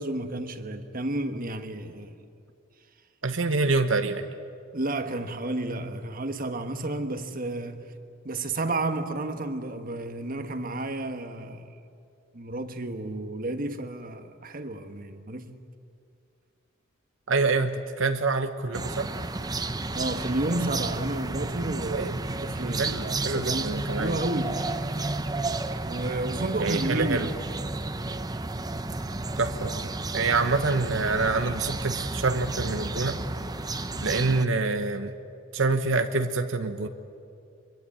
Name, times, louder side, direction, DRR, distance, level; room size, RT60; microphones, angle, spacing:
voice 1, 0.0-2.1 4.7-7.8 8.2-11.7 12.3-15.6 19.9-25.0 25.8-27.3, right 2 dB, 45° right, 1.4 m, -31 dB
voice 2, 3.2-4.2 17.3-19.1 21.9-22.2 22.7-24.2 26.6-27.3 29.4-33.2 34.0-35.1 35.5-36.9, right 3 dB, 85° right, 1.1 m, -26 dB
sound 1, 18.7-34.4, right 2 dB, 20° right, 0.8 m, -32 dB
24.5 x 23.0 x 8.9 m
head